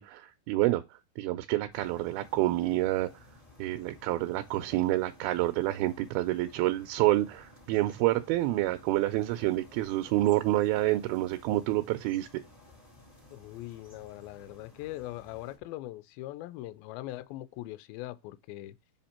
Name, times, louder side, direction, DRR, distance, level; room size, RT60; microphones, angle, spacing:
voice 1, 0.0-3.3 3.6-12.3, right 16 dB, 80° right, 2.4 m, -28 dB
sound 1, 1.7-15.6, left 2 dB, 10° left, 1.8 m, -56 dB
voice 2, 13.3-18.8, left 16 dB, 80° left, 2.2 m, -41 dB
5.6 x 5.1 x 4.2 m
omnidirectional pair, 4.5 m